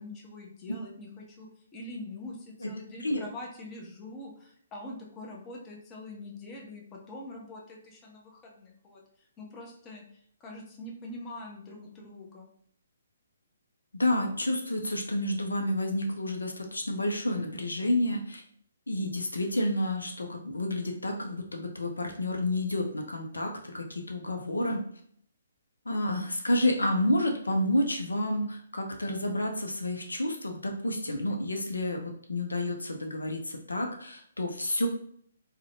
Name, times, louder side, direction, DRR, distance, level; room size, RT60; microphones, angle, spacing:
voice 1, 0.0-9.0 9.4-12.5, left 2 dB, 20° left, -1 dB, 0.5 m, -44 dB
voice 2, 13.9-18.4 18.9-24.8 25.9-34.9, left 1 dB, 80° left, 2 dB, 0.4 m, -30 dB
2.5 x 2.0 x 2.7 m, 0.63 s
figure-of-eight pair, 135°, 0 cm